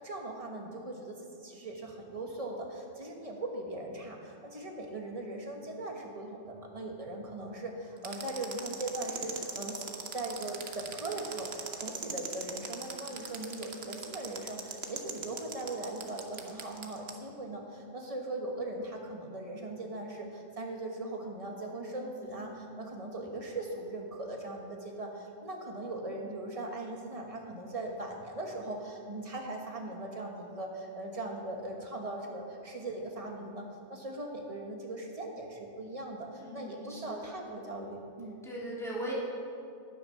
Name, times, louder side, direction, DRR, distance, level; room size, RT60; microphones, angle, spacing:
voice 1, 0.0-38.4, right 2 dB, 30° right, 1 dB, 1.4 m, -39 dB
sound 1, 8.0-17.1, right 6 dB, 60° right, 1.2 m, -39 dB
voice 2, 21.8-22.6 36.4-37.4 38.4-39.1, right 1 dB, ahead, -7 dB, 2.8 m, -41 dB
11.0 x 9.4 x 5.7 m, 2.5 s
omnidirectional pair, 1.3 m